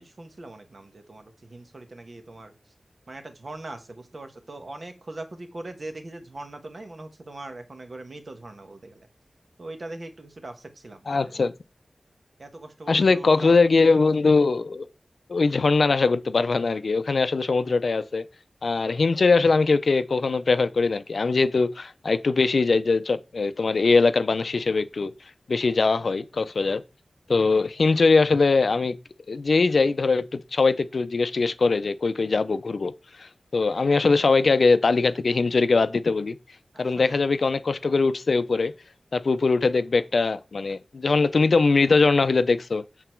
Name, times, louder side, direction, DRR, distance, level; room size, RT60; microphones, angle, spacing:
voice 1, 0.0-2.5 3.1-9.1 9.6-11.4 12.4-13.6 36.7-37.2, right 2 dB, 50° right, 1.2 m, -41 dB
voice 2, 11.1-11.5 12.9-14.9 15.3-18.2 18.6-25.1 25.5-26.8 27.3-29.0 29.3-32.9 33.2-36.4 36.8-38.7 39.1-42.8, left 4 dB, 65° left, 0.5 m, -21 dB
8.1 x 4.0 x 4.4 m
wide cardioid pair, 100°, 0 cm